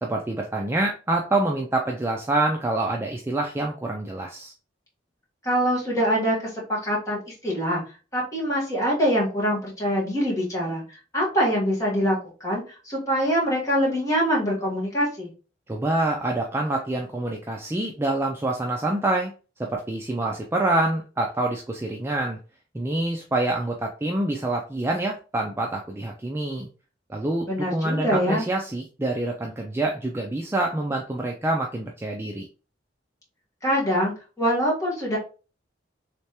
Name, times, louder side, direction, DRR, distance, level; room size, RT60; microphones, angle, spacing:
voice 1, 0.0-4.5 15.7-19.3 19.6-22.4 22.7-26.7 27.1-32.5, right 2 dB, 15° right, 0 dB, 0.3 m, -26 dB
voice 2, 5.4-7.8 8.1-10.8 11.1-15.3 27.5-28.4 33.6-35.2, equal, 15° left, -4 dB, 1.3 m, -24 dB
3.3 x 3.2 x 2.8 m, 0.35 s
head